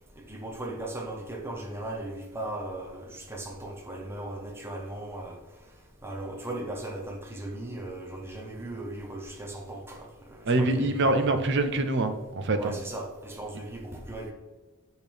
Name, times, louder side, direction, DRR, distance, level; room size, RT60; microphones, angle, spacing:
voice 1, 0.2-5.4 6.0-11.5 12.6-14.3, right 1 dB, 10° right, 0 dB, 0.7 m, -38 dB
voice 2, 10.5-12.8, right 2 dB, 50° right, 8 dB, 0.6 m, -25 dB
8.1 x 4.4 x 3.4 m, 1.2 s
head